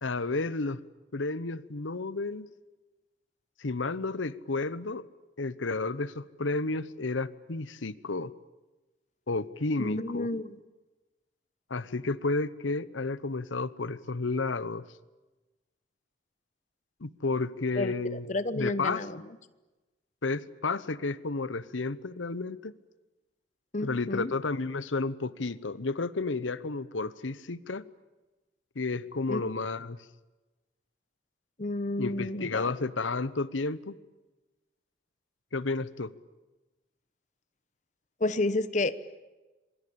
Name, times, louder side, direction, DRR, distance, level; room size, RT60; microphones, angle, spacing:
voice 1, 0.0-0.8 1.1-2.5 3.6-5.0 5.4-8.3 9.3-10.3 11.7-14.8 17.0-18.3 18.5-19.0 20.2-22.7 23.8-27.8 28.8-30.0 32.0-34.0 35.5-36.1, left 3 dB, 90° left, 17 dB, 1.0 m, -32 dB
voice 2, 9.8-10.6 17.8-19.2 23.7-24.3 29.3-29.4 31.6-32.7 38.2-38.9, left 2 dB, 40° left, 14 dB, 1.0 m, -30 dB
27.0 x 23.0 x 8.7 m, 1.1 s
head